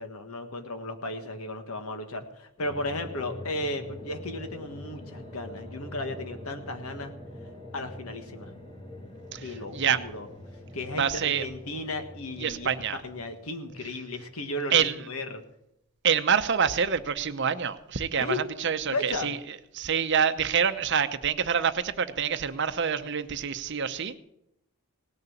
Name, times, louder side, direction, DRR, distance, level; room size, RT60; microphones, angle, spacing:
voice 1, 0.0-7.1 7.7-8.5 9.4-10.3 10.7-15.4 18.2-18.5 18.9-19.3, left 2 dB, 75° left, 7 dB, 1.5 m, -35 dB
sound 1, 2.6-14.6, left 1 dB, 25° left, 2.7 m, -44 dB
voice 2, 9.3-10.0 11.0-11.5 12.4-13.0 14.7-15.0 16.0-19.4 19.7-24.2, right 7 dB, 50° right, 11 dB, 0.7 m, -26 dB
18.0 x 6.8 x 7.2 m, 0.82 s
head